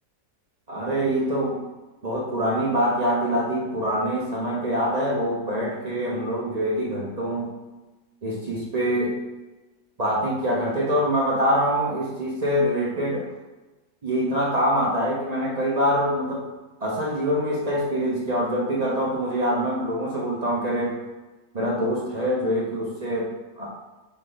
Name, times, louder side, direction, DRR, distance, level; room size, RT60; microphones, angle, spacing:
voice 1, 0.7-1.6 2.0-7.5 8.2-9.2 10.0-13.3 14.0-16.5 16.8-21.0 21.5-23.7, equal, 55° right, -5 dB, 0.4 m, -25 dB
4.0 x 3.5 x 3.8 m, 1.1 s
omnidirectional pair, 1.8 m